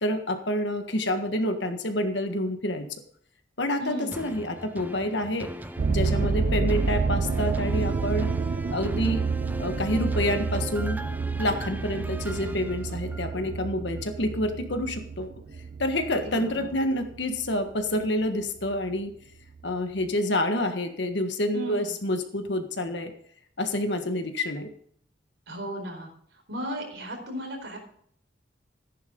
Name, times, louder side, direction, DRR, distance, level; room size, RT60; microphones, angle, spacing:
voice 1, 0.0-2.9 3.6-5.5 5.9-8.3 8.7-9.2 9.6-11.0 11.4-15.3 15.8-19.1 19.6-23.1 23.6-24.7, left 1 dB, 65° left, 6 dB, 1.6 m, -28 dB
voice 2, 3.8-4.2 16.2-16.7 21.5-22.0 25.5-26.1 26.5-27.8, equal, 75° right, 1 dB, 4.6 m, -35 dB
sound 1, 4.1-13.5 14.0-14.1, right 1 dB, 10° right, 0.6 m, -39 dB
sound 2, 5.8-18.1 18.6-19.0 19.6-19.7 20.0-20.1, right 4 dB, 45° right, 0.4 m, -29 dB
14.0 x 10.5 x 3.9 m, 0.63 s
head